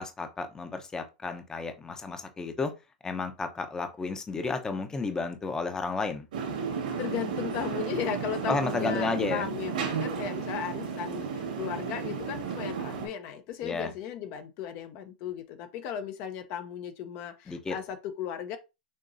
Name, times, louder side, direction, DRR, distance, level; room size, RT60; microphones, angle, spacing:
voice 1, 0.0-2.7 3.0-6.2 8.5-9.5 13.6-13.9 17.5-17.8, left 4 dB, 15° left, 0.8 m, -32 dB
sound 1, 6.3-13.1, right 6 dB, 80° right, 2.1 m, -33 dB
voice 2, 7.0-18.6, left 9 dB, 45° left, 0.7 m, -36 dB
6.6 x 3.0 x 2.6 m
hypercardioid pair, 120°, 5 cm